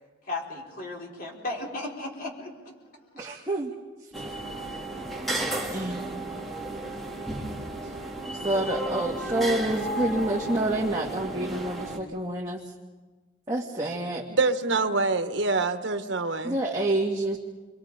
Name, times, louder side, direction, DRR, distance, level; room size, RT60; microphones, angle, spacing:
voice 1, 0.3-2.5, left 2 dB, 50° left, -2 dB, 5.1 m, -35 dB
voice 2, 3.1-3.7 5.6-6.1 8.4-12.6 13.5-14.2 16.4-17.4, right 1 dB, 20° right, -3 dB, 1.9 m, -28 dB
sound 1, 4.1-12.0, right 1 dB, ahead, 2.5 m, -33 dB
voice 3, 14.3-16.5, right 3 dB, 80° right, 8 dB, 1.3 m, -25 dB
30.0 x 24.0 x 5.1 m, 1.3 s
head